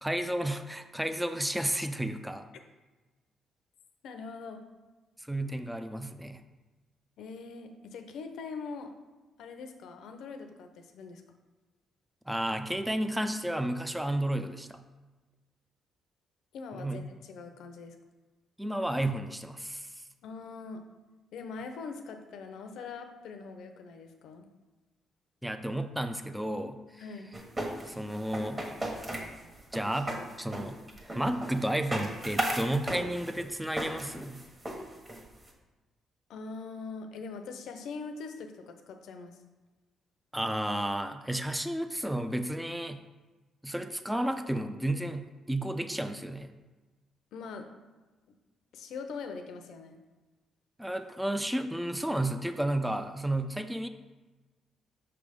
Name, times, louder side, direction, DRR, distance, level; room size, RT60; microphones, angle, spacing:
voice 1, 0.0-2.5 5.2-6.4 12.3-14.8 16.7-17.0 18.6-19.9 25.4-27.0 27.9-28.7 29.7-30.8 31.1-34.4 40.3-43.0 43.6-46.5 50.8-53.9, right 1 dB, 5° right, 8 dB, 0.4 m, -32 dB
voice 2, 4.0-4.6 7.2-8.9 9.4-11.2 16.5-18.0 20.2-20.8 21.3-24.5 27.0-27.3 36.3-39.4 47.3-47.7 48.7-50.0, left 4 dB, 80° left, 6 dB, 0.7 m, -42 dB
sound 1, 27.3-35.5, right 1 dB, 25° right, 1.3 m, -36 dB
6.0 x 3.4 x 5.2 m, 1.2 s
cardioid pair, 90°, 0 cm